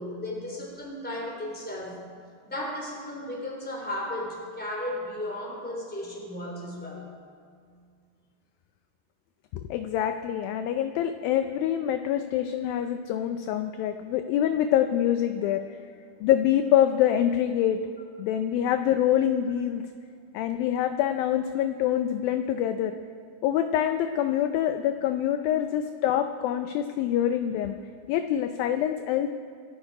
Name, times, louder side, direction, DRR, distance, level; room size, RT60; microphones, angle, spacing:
voice 1, 0.0-2.0 2.4-7.1 15.4-15.5 25.5-25.6, left 1 dB, 5° left, -2 dB, 3.0 m, -35 dB
voice 2, 9.5-15.6 16.2-17.8 18.2-19.8 20.3-22.9 23.4-27.8 28.1-29.3, left 10 dB, 80° left, 8 dB, 2.1 m, -25 dB
26.0 x 11.0 x 4.9 m, 2.2 s
omnidirectional pair, 4.7 m